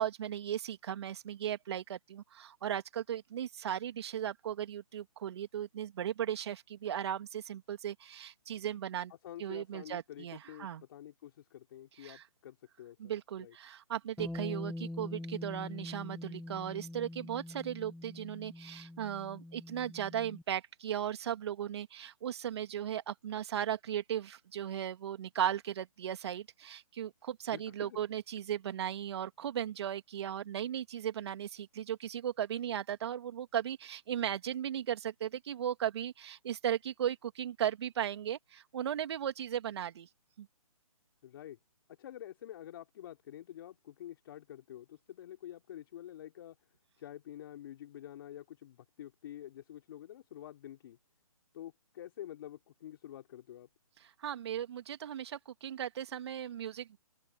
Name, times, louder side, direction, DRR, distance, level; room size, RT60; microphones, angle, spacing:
voice 1, 0.0-9.1 9.4-10.8 12.0-12.2 13.0-40.1 40.4-40.5 54.0-57.0, right 10 dB, 45° right, 2.8 m, -37 dB
voice 2, 9.2-13.1 13.4-13.5 27.5-28.0 41.2-41.6 42.0-46.6 47.0-51.0 51.5-53.7, left 12 dB, 40° left, 4.6 m, -48 dB
Bass guitar, 14.2-20.4, left 1 dB, ahead, 0.9 m, -44 dB
open air
hypercardioid pair, 150°, 19 cm